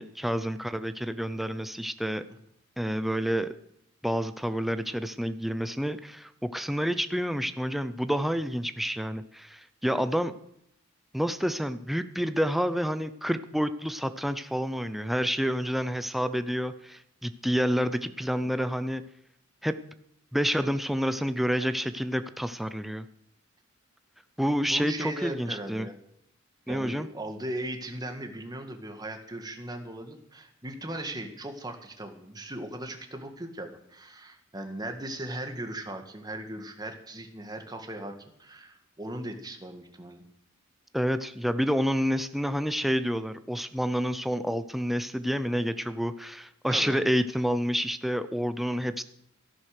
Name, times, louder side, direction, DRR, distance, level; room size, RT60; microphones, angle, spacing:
voice 1, 0.0-2.2 2.8-3.5 4.0-10.3 11.1-19.0 19.6-19.8 20.3-23.1 24.4-25.9 26.7-27.1 40.9-49.0, equal, ahead, 11 dB, 0.6 m, -29 dB
voice 2, 24.7-25.9 26.7-40.2 46.7-47.0, right 1 dB, 20° right, 5 dB, 1.7 m, -38 dB
13.5 x 11.0 x 6.5 m, 0.74 s
head